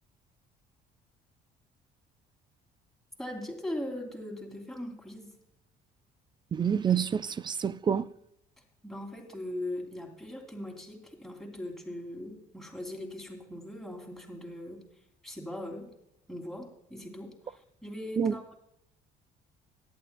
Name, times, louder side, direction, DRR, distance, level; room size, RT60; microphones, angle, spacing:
voice 1, 3.2-5.3 8.8-14.8 15.2-15.9 16.3-18.4, left 1 dB, ahead, 3.0 m, -40 dB
voice 2, 6.5-8.1 18.2-18.5, right 7 dB, 25° right, 0.5 m, -28 dB
18.0 x 11.5 x 2.2 m
cardioid pair, 110°, 17 cm